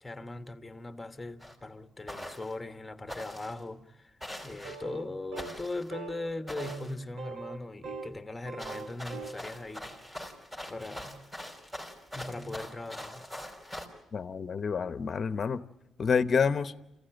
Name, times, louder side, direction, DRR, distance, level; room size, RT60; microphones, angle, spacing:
voice 1, 0.0-4.2 4.4-10.1 10.7-11.2 12.1-13.3, left 2 dB, 15° left, 1.3 m, -39 dB
sound 1, 1.4-1.6 2.1-2.5 3.1-3.6 4.2-4.8 5.4-5.9 6.5-7.0 8.6-13.9, equal, 10° right, 4.7 m, -43 dB
sound 2, 4.6-5.1 5.3-5.6 5.9-6.3 6.6-6.8 7.2-8.2 8.4-9.4, right 4 dB, 85° right, 1.8 m, -41 dB
voice 2, 14.1-15.6 16.0-16.7, left 6 dB, 45° left, 0.9 m, -28 dB
27.5 x 16.0 x 9.0 m
cardioid pair, 90°, 0 cm